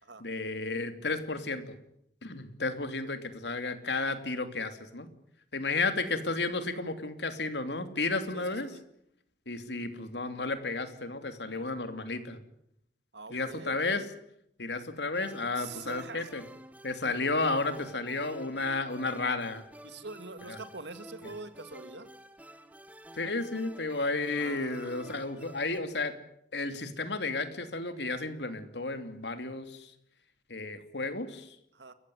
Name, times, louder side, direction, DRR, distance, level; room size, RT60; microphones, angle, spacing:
voice 1, 0.2-1.8 2.2-5.1 5.5-8.8 9.5-12.4 13.3-14.1 14.6-16.4 16.8-19.6 20.5-20.6 21.2-21.3 23.1-26.2 26.5-29.9 30.5-31.6, left 3 dB, 80° left, 9 dB, 2.9 m, -33 dB
voice 2, 8.3-8.8 11.5-11.6 13.1-14.0 15.6-16.3 19.8-22.1 23.9-24.1 24.4-25.2 31.7-31.9, right 3 dB, 85° right, 11 dB, 2.1 m, -45 dB
sound 1, 15.1-25.8, right 1 dB, 10° right, 1.4 m, -51 dB
29.5 x 15.0 x 9.5 m, 0.73 s
head